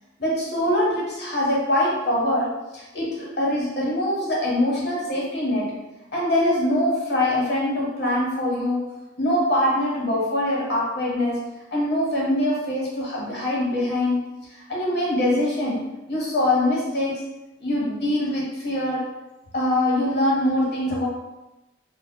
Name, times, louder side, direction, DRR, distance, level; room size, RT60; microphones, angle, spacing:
voice 1, 0.2-5.8 6.1-8.9 9.2-11.4 11.7-14.2 14.7-15.8 16.1-17.2 17.6-19.1 19.5-21.1, left 1 dB, 60° left, -4 dB, 0.9 m, -23 dB
3.4 x 2.2 x 2.2 m, 0.98 s
head